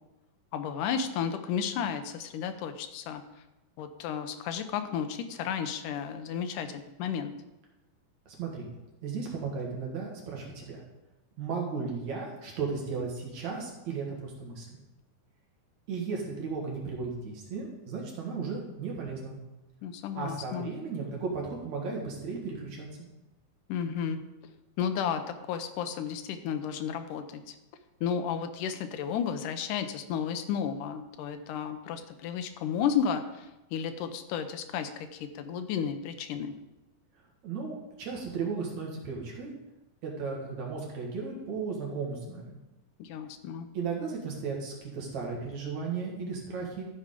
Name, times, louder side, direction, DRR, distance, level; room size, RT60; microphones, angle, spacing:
voice 1, 0.5-3.2 3.8-7.3 19.8-20.7 23.7-24.2 24.8-25.2 25.5-27.6 28.0-36.5 43.0-43.7, left 7 dB, 80° left, 8 dB, 2.0 m, -33 dB
voice 2, 8.3-8.7 9.0-10.8 11.4-14.7 15.9-19.4 20.2-22.9 37.4-39.5 40.0-42.6 43.7-46.9, right 5 dB, 55° right, -2 dB, 2.6 m, -35 dB
13.0 x 5.0 x 5.0 m, 0.99 s
omnidirectional pair, 4.3 m